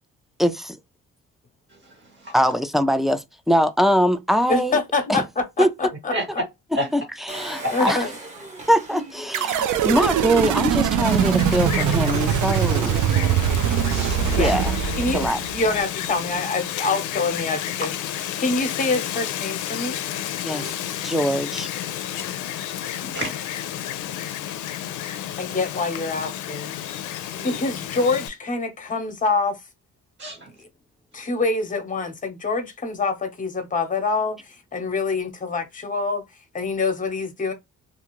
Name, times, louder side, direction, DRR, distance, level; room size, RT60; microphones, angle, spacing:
voice 1, 0.4-0.8 2.3-4.8 5.1-5.2 5.6-5.7 6.9-8.0 8.7-13.0 14.4-14.7 15.1-15.4 20.4-20.7 21.0-21.7, equal, ahead, 0.3 m, -22 dB
voice 2, 1.7-2.3 6.1-6.2 6.7-6.9 13.6-14.5 20.5-20.7 23.0-24.5 27.3-27.6 30.2-30.5, right 1 dB, 40° right, 1.3 m, -33 dB
voice 3, 4.5-6.1 7.7-8.1 14.3-14.5 15.0-17.9 18.4-20.0 20.9-21.0 25.4-26.7 27.4-29.6 31.1-36.2 36.5-37.5, left 3 dB, 25° left, 0.9 m, -25 dB
Engine, 7.3-10.7 11.2-11.3 11.5-11.6, right 2 dB, 25° right, 1.0 m, -39 dB
sound 1, 9.3-15.8, right 8 dB, 75° right, 0.5 m, -22 dB
Wind, 11.1-28.3, left 11 dB, 80° left, 0.5 m, -31 dB
2.5 x 2.3 x 3.0 m
cardioid pair, 90°, 30 cm